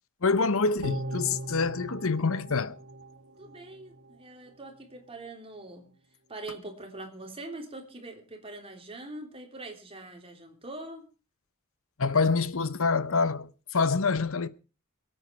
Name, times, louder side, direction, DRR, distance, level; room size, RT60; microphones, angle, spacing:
voice 1, 0.2-2.8 12.0-14.5, left 4 dB, 65° left, 0.9 m, -26 dB
sound 1, 0.8-4.2 4.5-4.6, right 1 dB, 50° right, 1.6 m, -39 dB
voice 2, 3.3-5.9 6.3-11.1, right 2 dB, 25° right, 3.3 m, -43 dB
23.0 x 9.0 x 4.6 m
head